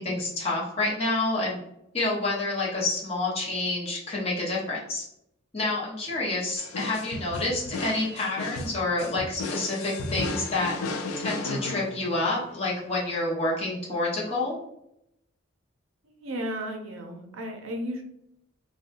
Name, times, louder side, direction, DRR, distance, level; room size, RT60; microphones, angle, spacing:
voice 1, 0.0-1.6 1.9-5.0 5.5-10.7 11.2-14.6, left 2 dB, 30° left, -6 dB, 0.8 m, -28 dB
sound 1, 6.6-12.4, left 2 dB, 90° left, 0.4 m, -34 dB
voice 2, 16.0-18.0, equal, 75° right, 3 dB, 0.5 m, -34 dB
2.7 x 2.2 x 2.5 m, 0.79 s
head